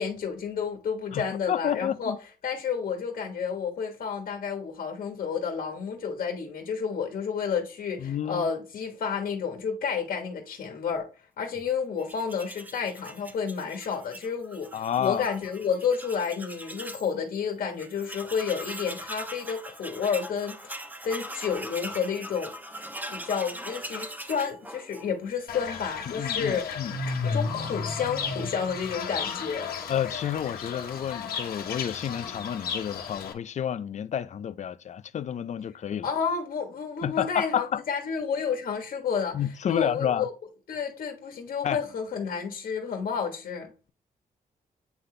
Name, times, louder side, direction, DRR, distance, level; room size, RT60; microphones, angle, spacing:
voice 1, 0.0-2.1 2.4-11.1 11.4-20.7 21.0-22.5 23.1-26.7 27.2-29.8 36.0-40.3 40.7-43.7, left 6 dB, 65° left, 1.3 m, -30 dB
voice 2, 1.1-2.2 8.0-8.5 14.7-15.2 26.1-26.9 29.9-36.1 37.0-37.8 39.3-40.3 41.6-41.8, left 9 dB, 50° left, 0.4 m, -30 dB
Tools, 12.0-17.1 17.5-17.6 17.8-25.4, equal, 10° right, 1.0 m, -41 dB
Fowl / Bird, 25.5-33.3, left 5 dB, 85° left, 1.1 m, -33 dB
8.2 x 3.9 x 3.2 m
cardioid pair, 100°, 15 cm